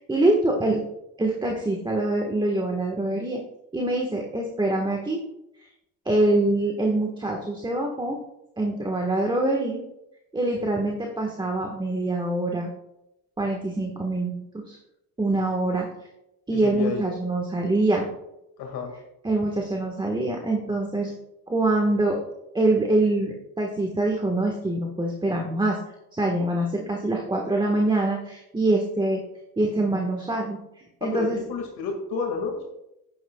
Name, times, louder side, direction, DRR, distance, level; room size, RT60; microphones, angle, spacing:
voice 1, 0.1-0.8 1.2-3.4 3.7-5.2 6.0-8.2 8.6-9.8 10.3-12.7 13.4-14.8 15.2-15.9 16.5-18.1 19.2-21.1 21.5-22.2 22.5-25.8 26.1-29.2 29.6-30.6 31.0-31.4, right 2 dB, 10° right, 1 dB, 1.4 m, -24 dB
voice 2, 16.5-17.0 18.6-18.9 31.0-32.6, left 4 dB, 65° left, 1 dB, 2.0 m, -30 dB
11.5 x 9.9 x 2.3 m, 0.87 s
cardioid pair, 105°, 39 cm